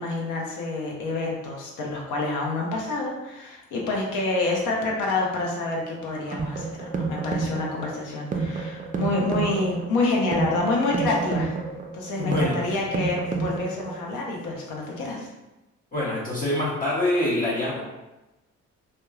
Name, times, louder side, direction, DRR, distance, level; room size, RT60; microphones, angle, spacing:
voice 1, 0.0-11.6 11.9-15.3, left 2 dB, 90° left, -1 dB, 0.7 m, -27 dB
sound 1, 6.1-14.1, right 4 dB, 30° right, 0.3 m, -30 dB
voice 2, 12.2-12.7 15.9-17.8, left 1 dB, 30° left, -7 dB, 0.7 m, -25 dB
3.0 x 2.1 x 2.3 m, 1.0 s
cardioid pair, 90°, 30 cm